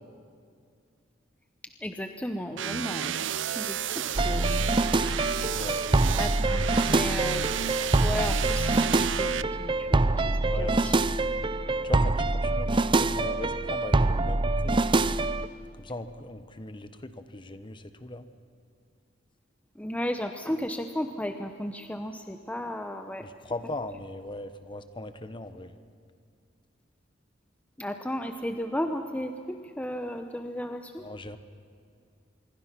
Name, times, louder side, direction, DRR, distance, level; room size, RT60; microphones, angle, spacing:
voice 1, 1.8-4.6 6.2-7.4 8.0-9.3 9.6-10.9 19.8-23.3 27.8-31.0, equal, 10° left, 6 dB, 0.8 m, -34 dB
sound 1, 2.6-9.4, right 9 dB, 75° right, 0.5 m, -32 dB
sound 2, 4.2-15.5, right 2 dB, 25° right, 0.6 m, -25 dB
voice 2, 10.5-10.9 11.8-14.8 15.8-18.2 23.2-25.7 31.0-31.4, left 2 dB, 25° left, 11 dB, 1.1 m, -39 dB
26.0 x 22.5 x 6.0 m, 2.3 s
head